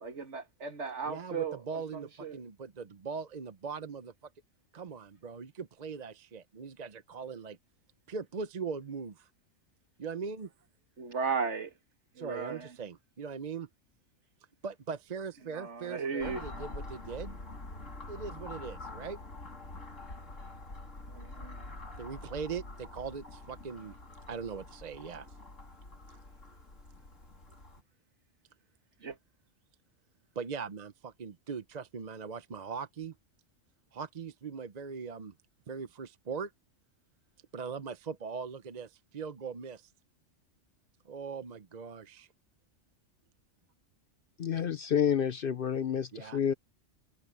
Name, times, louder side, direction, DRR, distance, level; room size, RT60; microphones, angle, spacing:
voice 1, 0.0-2.4 11.0-11.7 12.2-12.7 15.5-16.4 21.1-21.6 29.0-29.2, right 5 dB, 65° right, 2.0 m, -36 dB
voice 2, 1.0-4.1 4.7-7.6 8.1-9.3 10.0-10.5 12.2-13.7 14.6-17.4 18.1-19.2 22.0-24.0 24.3-25.3 30.4-33.1 33.9-35.3 35.7-36.5 37.5-39.9 41.1-42.3 46.1-46.4, right 5 dB, 40° right, 0.7 m, -40 dB
sound 1, 16.2-27.8, left 2 dB, 80° left, 3.9 m, -46 dB
voice 3, 44.4-46.5, left 8 dB, 55° left, 0.7 m, -29 dB
omnidirectional pair, 1.3 m